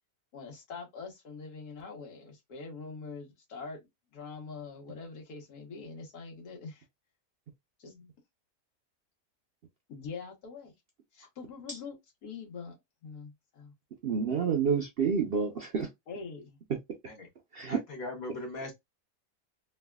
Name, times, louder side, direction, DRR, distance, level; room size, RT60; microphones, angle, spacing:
voice 1, 0.3-6.8 7.8-8.1 9.9-10.7 11.1-12.7 13.0-13.7 16.1-16.6, left 4 dB, 85° left, 1.6 m, -44 dB
voice 2, 14.0-15.9 17.5-17.8, right 6 dB, 55° right, 0.6 m, -28 dB
voice 3, 17.7-18.7, left 2 dB, 70° left, 1.6 m, -39 dB
3.3 x 2.3 x 2.2 m
omnidirectional pair, 1.6 m